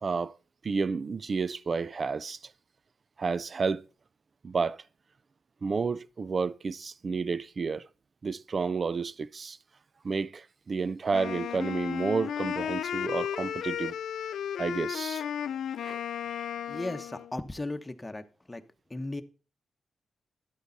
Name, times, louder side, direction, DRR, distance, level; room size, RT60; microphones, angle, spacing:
voice 1, 0.0-0.4 0.6-2.4 3.2-3.9 4.4-4.8 5.6-7.8 8.2-9.6 10.0-14.0 14.6-15.3 15.8-16.0, right 4 dB, 50° right, 0.5 m, -31 dB
Wind instrument woodwind instrument, 11.1-17.3, left 9 dB, 85° left, 0.5 m, -34 dB
voice 2, 16.7-18.6 18.9-19.2, left 2 dB, 20° left, 1.1 m, -36 dB
12.0 x 8.1 x 4.1 m
cardioid pair, 65°, 0 cm